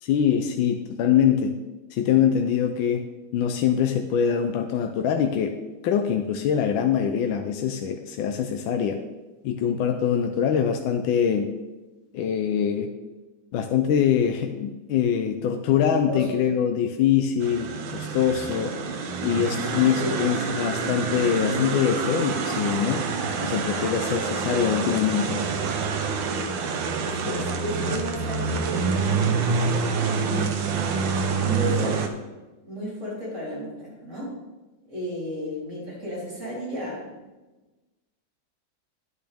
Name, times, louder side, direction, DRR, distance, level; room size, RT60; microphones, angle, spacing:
voice 1, 0.0-1.5 1.9-3.0 3.3-5.5 5.8-9.0 9.4-11.5 12.1-12.9 13.5-18.7 19.2-23.0 23.4-25.4, left 8 dB, 80° left, 5 dB, 1.4 m, -23 dB
voice 2, 15.7-16.3 19.7-20.2 23.7-24.1 27.0-29.2 30.3-30.5 31.4-32.1 32.6-34.3 34.9-37.2, equal, 35° right, -7 dB, 3.9 m, -33 dB
sound 1, 17.4-32.1, right 5 dB, 75° right, 1.5 m, -27 dB
10.5 x 9.1 x 3.5 m, 1.2 s
omnidirectional pair, 2.1 m